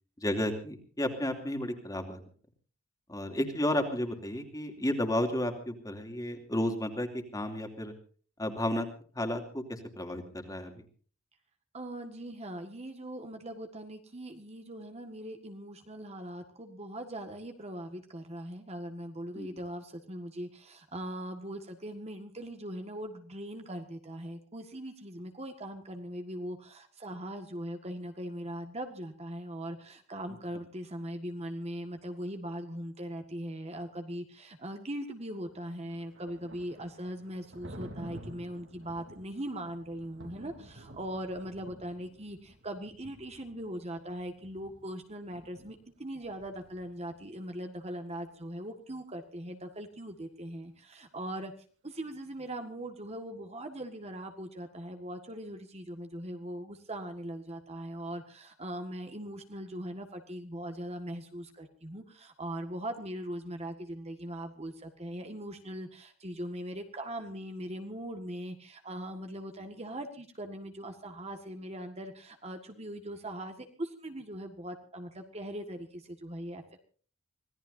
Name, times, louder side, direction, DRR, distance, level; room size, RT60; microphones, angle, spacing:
voice 1, 0.2-2.2 3.1-7.9 8.4-8.9 9.1-10.7 19.3-19.5, left 1 dB, 15° left, 5 dB, 2.7 m, -32 dB
voice 2, 11.7-51.5 51.8-76.6, right 1 dB, 30° right, 5 dB, 1.7 m, -40 dB
Thunder, 35.5-47.2, right 1 dB, 60° right, 3.3 m, -51 dB
26.0 x 17.5 x 2.7 m, 0.43 s
head